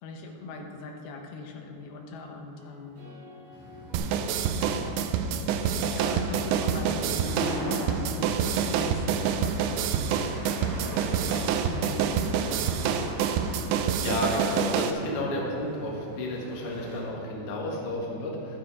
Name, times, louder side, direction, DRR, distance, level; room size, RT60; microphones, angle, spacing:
voice 1, 0.0-3.0 4.5-5.0 5.8-10.6 10.9-13.0, left 3 dB, 70° left, 2 dB, 2.6 m, -40 dB
sound 1, 2.5-10.1, equal, 40° right, 3.7 m, -49 dB
sound 2, 3.5-17.0, left 1 dB, 10° left, 1.3 m, -40 dB
sound 3, 3.9-14.9, right 7 dB, 85° right, 2.8 m, -27 dB
voice 2, 14.0-18.6, left 1 dB, 55° left, -3 dB, 1.6 m, -31 dB
11.5 x 8.9 x 4.8 m, 2.6 s
omnidirectional pair, 5.1 m